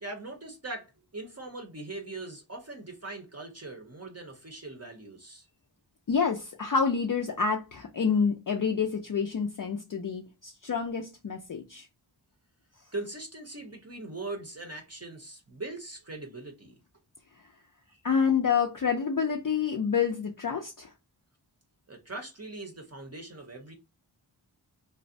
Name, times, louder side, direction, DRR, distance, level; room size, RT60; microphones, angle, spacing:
voice 1, 0.0-5.5 12.9-16.8 17.9-18.0 21.9-23.7, right 2 dB, 35° right, 0.7 m, -41 dB
voice 2, 6.1-11.9 18.0-20.9, left 6 dB, 50° left, 0.5 m, -28 dB
2.4 x 2.0 x 2.5 m
wide cardioid pair, 45°, 44 cm